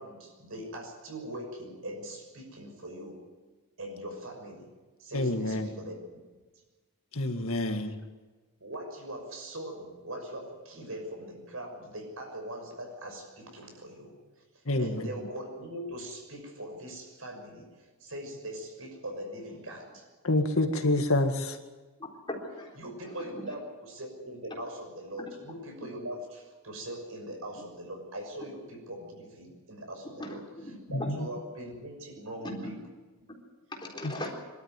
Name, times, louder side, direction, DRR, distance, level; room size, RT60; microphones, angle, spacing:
voice 1, 0.0-3.2 3.8-4.7 5.0-6.2 8.6-14.1 14.5-20.1 22.8-30.4 30.9-32.7, right 1 dB, 70° right, 3 dB, 6.3 m, -41 dB
voice 2, 5.1-5.7 7.1-8.0 14.7-15.1 20.2-21.6 30.9-31.2 34.0-34.1, left 2 dB, 75° left, 6 dB, 2.0 m, -27 dB
voice 3, 22.3-22.8 23.0-23.5 30.2-31.1 32.4-32.7 33.7-34.3, left 1 dB, 20° left, 0 dB, 3.9 m, -39 dB
23.5 x 13.0 x 9.3 m, 1.3 s
head